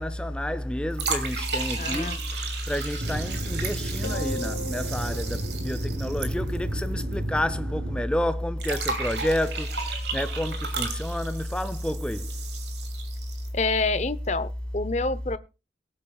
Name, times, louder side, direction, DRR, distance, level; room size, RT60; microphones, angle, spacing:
voice 1, 0.0-12.3, left 1 dB, 5° left, 0.5 m, -29 dB
sound 1, 0.9-7.1 7.4-7.5 8.6-13.6, right 5 dB, 75° right, 2.8 m, -34 dB
voice 2, 1.8-2.2 13.5-15.4, left 3 dB, 40° left, 0.8 m, -27 dB
sound 2, 3.0-8.0, right 1 dB, 55° right, 1.1 m, -33 dB
sound 3, 4.0-6.6, left 2 dB, 85° left, 1.9 m, -38 dB
22.5 x 8.7 x 2.4 m
head